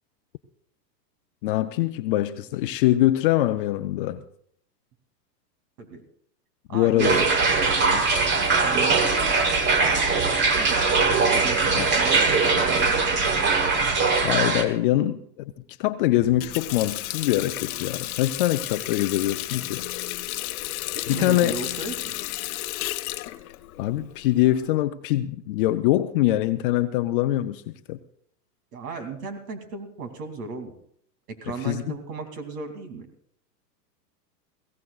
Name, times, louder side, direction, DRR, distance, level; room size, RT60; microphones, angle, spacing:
voice 1, 1.4-4.2 6.7-7.2 7.9-8.1 14.2-15.5 15.8-19.8 21.1-21.6 23.8-27.6 27.9-28.0 31.5-31.8, left 15 dB, 35° left, 10 dB, 0.4 m, -23 dB
voice 2, 6.7-7.3 8.6-11.0 11.3-13.4 20.9-22.1 28.7-30.7 31.3-33.1, right 4 dB, 65° right, 6 dB, 2.8 m, -36 dB
sound 1, 7.0-14.6, right 4 dB, 20° right, 1.2 m, -21 dB
Water tap faucet, 16.2-24.7, left 16 dB, 60° left, 0.9 m, -33 dB
22.0 x 16.5 x 2.4 m, 0.65 s
hypercardioid pair, 135°, 49 cm